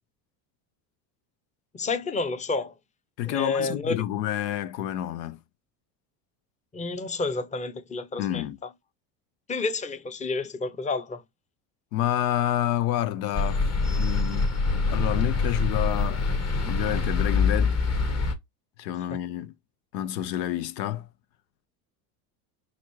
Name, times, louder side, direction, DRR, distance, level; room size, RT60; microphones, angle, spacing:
voice 1, 1.7-2.7 3.2-4.0 6.7-8.5 9.5-11.2 19.0-19.1, left 3 dB, 15° left, 0.6 m, -30 dB
voice 2, 3.2-5.4 8.2-8.6 11.9-13.6 14.0-14.5 14.9-16.2 16.7-17.8 18.8-19.5 19.9-21.1, left 12 dB, 85° left, 0.6 m, -28 dB
sound 1, 13.3-18.3, left 4 dB, 30° left, 1.1 m, -25 dB
5.7 x 2.5 x 3.0 m
supercardioid pair, 85°, 48 cm